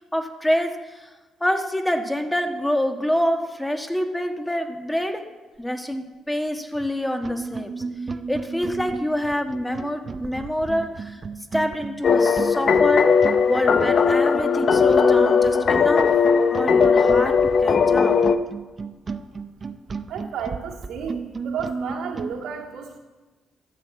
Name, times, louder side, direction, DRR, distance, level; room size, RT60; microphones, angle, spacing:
voice 1, 0.1-1.1 1.4-5.2 5.6-7.7 8.3-11.2 11.5-13.1 13.5-16.1 16.5-18.2, equal, 5° left, 5 dB, 1.3 m, -26 dB
sound 1, 6.7-6.9 7.2-22.4, right 4 dB, 40° right, 0.6 m, -34 dB
sound 2, 12.0-18.4, left 6 dB, 50° left, 0.6 m, -18 dB
voice 2, 20.1-23.0, right 7 dB, 85° right, -2 dB, 2.3 m, -32 dB
13.5 x 6.7 x 8.0 m, 1.2 s
cardioid pair, 90°, 0 cm